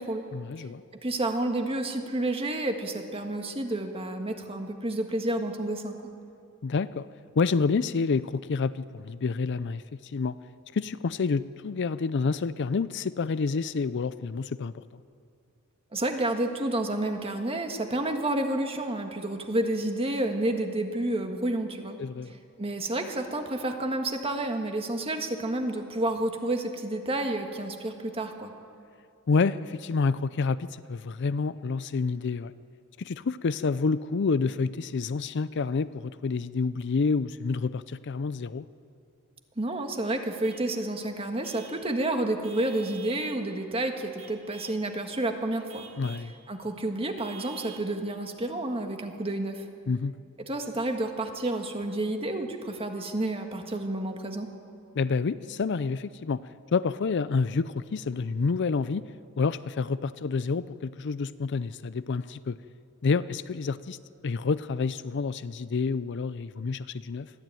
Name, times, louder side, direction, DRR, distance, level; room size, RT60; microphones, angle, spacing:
voice 1, 0.3-0.8 6.6-7.1 7.4-10.4 10.7-14.8 22.0-22.3 29.3-32.5 33.0-38.7 46.0-46.3 49.9-50.2 54.9-56.4 56.7-59.0 59.4-62.6 63.0-64.0 64.2-67.3, left 4 dB, 55° left, 15 dB, 0.5 m, -28 dB
voice 2, 1.0-6.0 15.9-22.0 22.6-28.5 39.6-45.9 46.5-49.6 50.5-54.5, right 1 dB, 25° right, 4 dB, 1.7 m, -30 dB
Vehicle horn car horn honking / Truck, 40.4-40.7 41.4-41.8 42.4-43.4 44.2-44.8 45.7-46.3 47.2-47.9, right 7 dB, 75° right, 2.7 m, -47 dB
22.5 x 14.0 x 9.2 m, 2.4 s
head